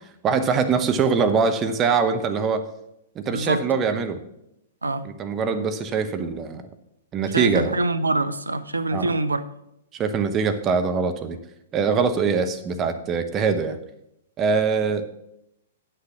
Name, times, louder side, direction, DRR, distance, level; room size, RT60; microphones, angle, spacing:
voice 1, 0.2-2.7 3.2-4.2 5.0-6.6 7.1-7.7 8.9-9.1 9.9-11.4 11.7-13.8 14.4-15.1, right 5 dB, 25° right, 0.7 m, -23 dB
voice 2, 3.3-3.6 4.8-5.0 7.3-9.4, right 2 dB, 80° right, 0.6 m, -24 dB
9.5 x 6.6 x 6.0 m
figure-of-eight pair, 110°, 0 cm